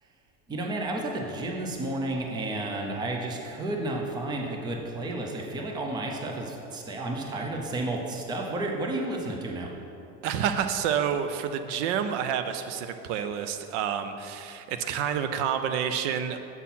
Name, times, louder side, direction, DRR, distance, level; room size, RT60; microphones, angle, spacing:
voice 1, 0.5-9.7, right 2 dB, 10° right, 1 dB, 0.5 m, -32 dB
voice 2, 10.2-16.4, right 8 dB, 80° right, 9 dB, 0.6 m, -29 dB
7.1 x 4.3 x 5.5 m, 2.8 s
cardioid pair, 160°, 35 cm